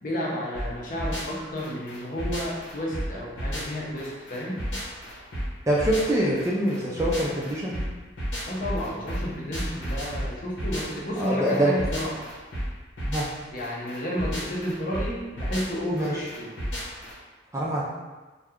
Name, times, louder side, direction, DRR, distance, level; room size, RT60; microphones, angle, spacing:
voice 1, 0.0-4.6 8.5-12.1 13.5-16.5, equal, 45° left, -4 dB, 0.6 m, -31 dB
sound 1, 0.5-17.1, equal, 80° left, 1.0 m, -33 dB
voice 2, 5.7-7.8 11.2-11.8 13.1-13.3 15.9-16.2 17.5-17.8, right 1 dB, 15° right, -5 dB, 0.4 m, -24 dB
2.7 x 2.3 x 3.5 m, 1.2 s
head